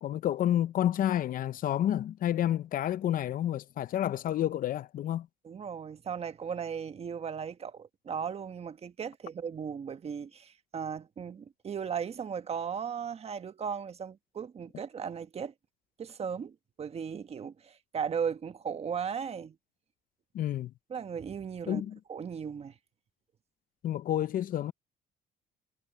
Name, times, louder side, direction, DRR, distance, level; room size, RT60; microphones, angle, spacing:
voice 1, 0.0-5.3 20.3-20.7 21.7-22.0 23.8-24.7, left 11 dB, 55° left, 0.7 m, -29 dB
voice 2, 5.4-15.5 16.0-19.5 20.9-21.8 22.1-22.7, right 7 dB, 35° right, 1.4 m, -36 dB
cardioid pair, 110°, 17 cm